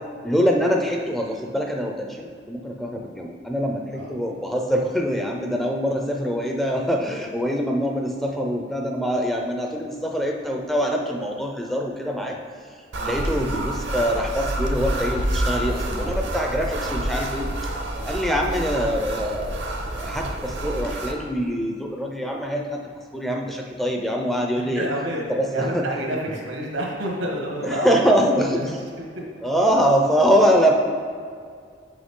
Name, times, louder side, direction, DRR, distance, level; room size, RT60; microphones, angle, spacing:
voice 1, 0.2-12.4 13.0-17.5 18.0-19.6 19.9-22.8 23.1-24.9 25.3-25.9 27.6-28.8 29.4-30.7, equal, ahead, 1 dB, 0.4 m, -24 dB
sound 1, 12.9-21.1, right 1 dB, 65° right, 0.7 m, -28 dB
voice 2, 12.9-13.4 17.8-18.1 24.5-25.2 25.5-28.1 28.5-28.6 29.0-29.2, right 1 dB, 85° right, -2 dB, 1.5 m, -30 dB
6.1 x 5.7 x 3.7 m, 2.1 s
head